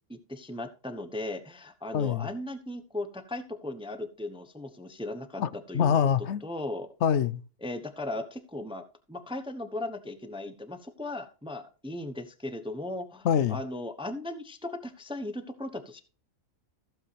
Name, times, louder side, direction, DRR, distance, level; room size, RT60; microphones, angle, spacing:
voice 1, 0.1-5.9 6.4-6.9 7.6-8.8 9.1-16.0, left 2 dB, 5° right, 0.8 m, -37 dB
voice 2, 1.9-2.3 5.4-5.5 5.7-6.4 7.0-7.4 13.2-13.6, left 8 dB, 60° left, 0.8 m, -24 dB
15.0 x 7.6 x 3.3 m
omnidirectional pair, 1.5 m